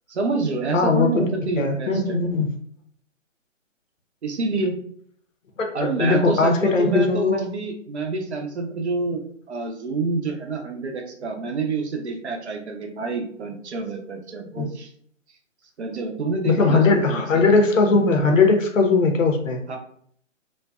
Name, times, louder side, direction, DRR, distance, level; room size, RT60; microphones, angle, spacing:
voice 1, 0.1-2.2 4.2-4.8 5.7-9.2 9.5-14.9 15.8-17.4 19.7-19.8, right 3 dB, 60° right, 3 dB, 0.6 m, -27 dB
voice 2, 0.7-1.1 1.6-2.5 5.6-7.4 14.6-14.7 16.4-19.6, left 3 dB, 75° left, 4 dB, 0.7 m, -19 dB
2.5 x 2.2 x 2.3 m, 0.65 s
figure-of-eight pair, 140°, 39 cm